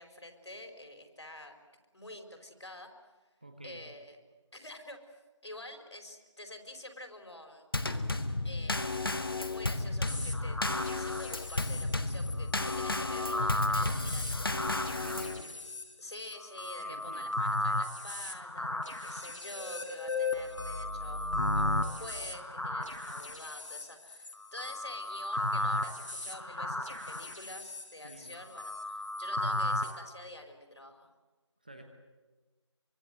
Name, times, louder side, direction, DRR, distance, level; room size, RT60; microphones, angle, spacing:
voice 1, 0.0-1.5 1.9-2.9 3.6-4.2 4.5-5.0 5.4-7.6 8.4-9.0 9.4-14.5 16.0-31.1, left 1 dB, 65° left, 5 dB, 4.9 m, -48 dB
voice 2, 3.4-3.8 14.8-15.5 16.8-17.3 28.0-28.4 31.6-31.8, right 2 dB, 15° right, 4 dB, 1.2 m, -48 dB
Drum kit / Snare drum / Bass drum, 7.7-15.4, left 2 dB, 50° left, 1.5 m, -33 dB
sound 1, 10.1-29.9, left 1 dB, 85° left, 4.5 m, -35 dB
25.0 x 25.0 x 8.0 m, 1.2 s
figure-of-eight pair, 175°, 16 cm